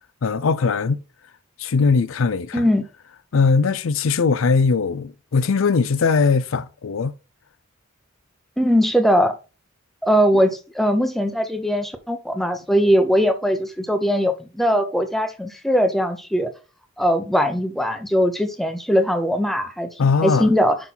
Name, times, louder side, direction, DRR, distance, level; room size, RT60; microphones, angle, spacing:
voice 1, 0.2-1.0 1.6-2.7 3.3-7.1 20.0-20.5, left 4 dB, 70° left, 0.5 m, -20 dB
voice 2, 2.5-2.8 8.6-9.3 10.0-16.5 17.0-19.9 20.2-20.8, equal, ahead, 0.9 m, -20 dB
6.0 x 5.5 x 4.3 m
head